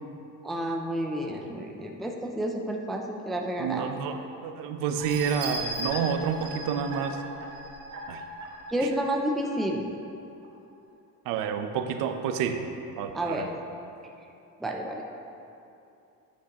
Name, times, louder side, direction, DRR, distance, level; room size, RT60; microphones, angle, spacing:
voice 1, 0.4-3.9 8.7-9.9 13.1-13.5 14.6-15.0, right 1 dB, ahead, 1 dB, 0.3 m, -30 dB
voice 2, 3.6-7.2 8.1-8.2 8.8-8.9 11.3-12.6 13.0-13.5, right 7 dB, 75° right, 7 dB, 0.7 m, -29 dB
sound 1, 5.0-9.5 9.9-10.0 10.4-10.5, right 1 dB, 60° right, 1.5 m, -37 dB
10.0 x 8.2 x 2.9 m, 2.7 s
cardioid pair, 170°, 33 cm